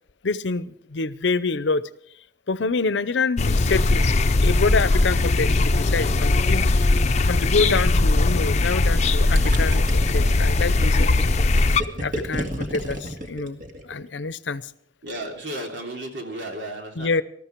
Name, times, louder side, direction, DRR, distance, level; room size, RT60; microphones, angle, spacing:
voice 1, 0.2-1.9 2.5-4.1 4.4-11.1 11.9-14.7 17.0-17.2, left 4 dB, 80° left, 16 dB, 0.7 m, -26 dB
sound 1, 3.4-11.8, left 2 dB, 40° left, 0.6 m, -19 dB
Gurgling, 9.3-14.0, equal, 50° right, 2.1 m, -31 dB
voice 2, 15.0-17.1, right 1 dB, 80° right, 2 dB, 3.2 m, -33 dB
19.5 x 13.5 x 4.6 m, 0.65 s
head